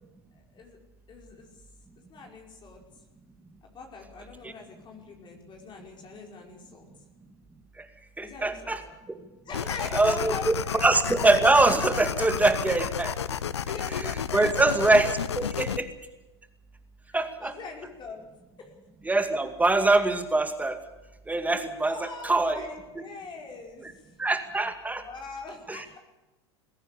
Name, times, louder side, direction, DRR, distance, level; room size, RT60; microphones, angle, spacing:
voice 1, 0.3-0.8 1.1-1.6 2.1-2.8 3.6-6.9 8.2-8.8 9.4-10.9 13.7-14.4 17.4-18.2 18.6-18.7 21.8-24.1 24.8-26.0, left 4 dB, 35° left, 1 dB, 5.0 m, -42 dB
voice 2, 8.2-8.8 9.9-10.6 10.8-13.1 14.3-15.1 15.4-15.9 17.1-17.5 19.1-20.8 21.3-22.6 24.2-25.0 25.7-25.8, right 2 dB, 10° right, 8 dB, 2.3 m, -23 dB
sound 1, 9.5-15.8, left 8 dB, 85° left, 0.7 m, -32 dB
21.0 x 17.0 x 8.3 m, 1.1 s
hypercardioid pair, 85°, 14 cm